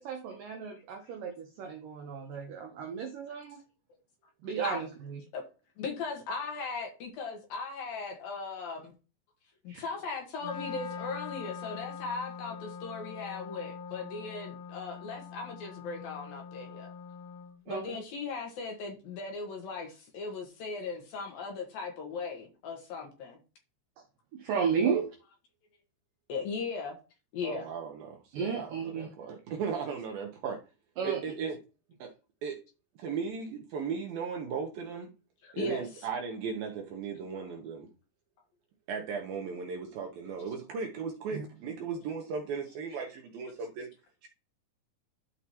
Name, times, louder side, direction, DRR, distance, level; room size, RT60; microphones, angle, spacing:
voice 1, 0.0-3.6 4.4-5.2 9.7-9.8 17.7-18.0 24.3-25.1 28.3-29.1 31.0-31.2 41.3-41.5, right 6 dB, 90° right, 3 dB, 1.9 m, -33 dB
voice 2, 5.8-8.9 9.6-16.9 17.7-23.4 26.3-27.0 27.3-27.7 35.4-35.8 37.4-37.5, left 4 dB, 60° left, 3 dB, 2.9 m, -38 dB
Wind instrument woodwind instrument, 10.4-17.6, left 6 dB, 90° left, 3.8 m, -43 dB
voice 3, 27.4-30.6 31.0-31.6 32.0-32.1 32.4-32.6 33.0-35.1 35.5-37.9 38.9-43.9 44.2-44.3, right 6 dB, 70° right, 2 dB, 2.4 m, -36 dB
13.0 x 4.9 x 3.0 m, 0.32 s
omnidirectional pair, 5.3 m